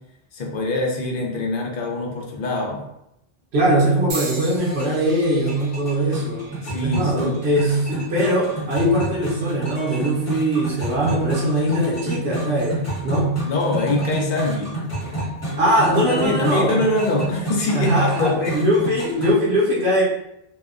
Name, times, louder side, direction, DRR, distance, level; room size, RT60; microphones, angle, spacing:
voice 1, 0.3-2.8 6.6-7.4 13.4-14.8 15.8-18.6, left 2 dB, 60° left, 0 dB, 0.6 m, -24 dB
voice 2, 3.5-6.5 6.8-13.4 15.6-16.8 17.7-20.0, right 1 dB, 80° right, -6 dB, 1.0 m, -21 dB
sound 1, 4.1-8.2 8.9-9.4 10.3-10.5, right 3 dB, 60° right, 0.7 m, -39 dB
sound 2, 4.6-19.3, right 1 dB, 15° left, 0.8 m, -30 dB
2.8 x 2.0 x 2.4 m, 0.82 s
omnidirectional pair, 1.1 m